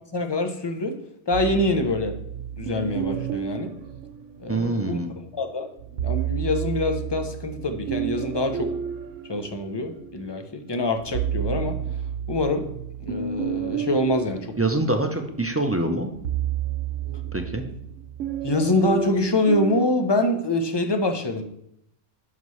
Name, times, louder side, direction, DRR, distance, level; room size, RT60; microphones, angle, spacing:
voice 1, 0.1-1.0 1.3-2.2 2.6-3.7 4.4-5.0 5.3-5.7 6.0-8.7 9.3-11.8 12.3-12.7 13.1-14.5 18.4-21.4, left 2 dB, 25° left, 6 dB, 0.7 m, -25 dB
sound 1, 1.3-4.8 5.8-10.2 10.7-19.9, right 8 dB, 80° right, 1.1 m, -31 dB
voice 2, 4.5-5.2 14.6-16.1 17.3-17.6, right 2 dB, 15° right, 4 dB, 0.5 m, -25 dB
11.0 x 5.9 x 3.2 m, 0.76 s
omnidirectional pair, 1.3 m